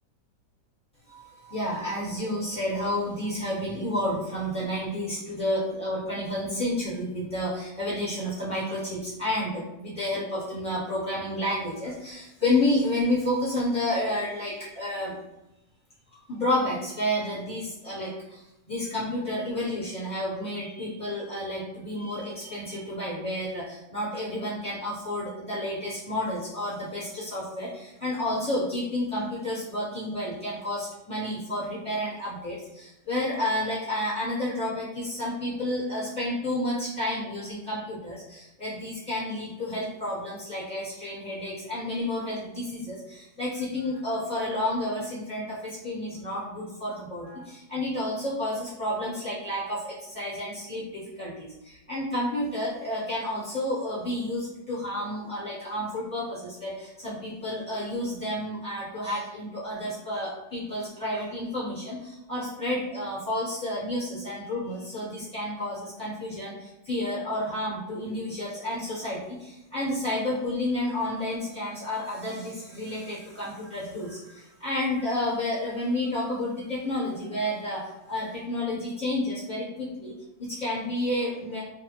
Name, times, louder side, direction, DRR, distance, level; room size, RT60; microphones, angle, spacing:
voice 1, 1.1-15.2 16.1-18.4 18.7-77.8 78.1-81.6, left 1 dB, 5° left, -10 dB, 1.1 m, -30 dB
2.7 x 2.4 x 3.0 m, 0.94 s
omnidirectional pair, 1.9 m